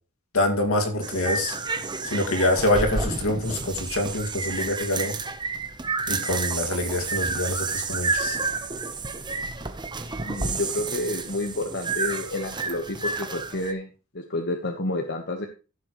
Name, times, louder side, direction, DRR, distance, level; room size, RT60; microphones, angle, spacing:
voice 1, 0.3-1.6 2.0-5.1 6.1-8.4, left 1 dB, 70° left, 2.3 m, -25 dB
sound 1, 1.0-13.7, right 4 dB, 20° right, 0.9 m, -30 dB
voice 2, 10.2-15.5, left 2 dB, 55° left, 1.3 m, -30 dB
15.0 x 7.6 x 3.2 m
head